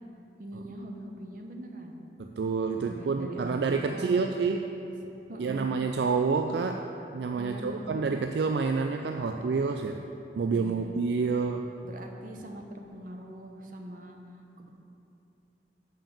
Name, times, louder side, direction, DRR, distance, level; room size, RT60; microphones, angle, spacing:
voice 1, 0.4-2.0 2.8-4.9 5.3-5.7 7.4-8.1 10.5-10.9 11.8-14.2 14.6-14.7, right 1 dB, 50° right, 2 dB, 0.8 m, -42 dB
voice 2, 2.2-4.6 5.4-10.0 10.4-11.7, right 4 dB, 70° right, 5 dB, 0.3 m, -28 dB
7.0 x 5.7 x 7.2 m, 2.8 s
head